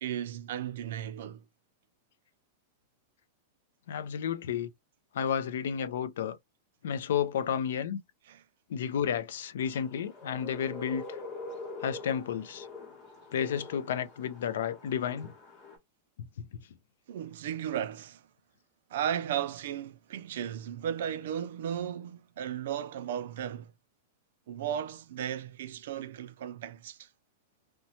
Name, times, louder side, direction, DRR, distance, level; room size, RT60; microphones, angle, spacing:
voice 1, 0.0-1.4 8.3-8.4 17.1-18.3 18.9-23.7 24.5-27.1, right 9 dB, 65° right, 0.4 m, -35 dB
voice 2, 3.9-4.7 5.1-6.4 6.8-8.0 8.7-11.2 11.8-12.7 13.3-15.3 16.4-16.6, left 8 dB, 80° left, 0.4 m, -32 dB
sound 1, 9.6-15.8, left 2 dB, 25° left, 0.9 m, -44 dB
2.9 x 2.2 x 2.7 m
supercardioid pair, 170°, 0 cm